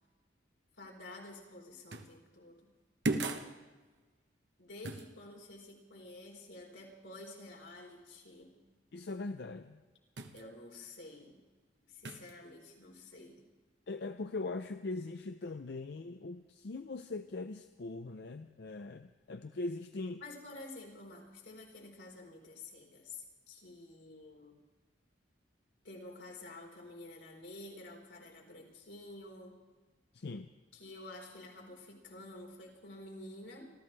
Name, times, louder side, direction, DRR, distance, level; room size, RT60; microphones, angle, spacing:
voice 1, 0.8-2.7 4.6-8.5 10.3-11.4 11.9-13.4 20.2-24.6 25.8-29.6 30.7-33.7, left 2 dB, 90° left, -1 dB, 4.3 m, -50 dB
sound 1, 1.9-2.2 3.0-3.5 4.8-5.1 10.2-10.4 12.0-12.3, right 2 dB, 70° right, 1.1 m, -35 dB
voice 2, 8.9-9.8 13.9-20.2 30.1-30.5, left 3 dB, 60° left, 8 dB, 0.5 m, -41 dB
27.5 x 14.0 x 3.3 m, 1.3 s
head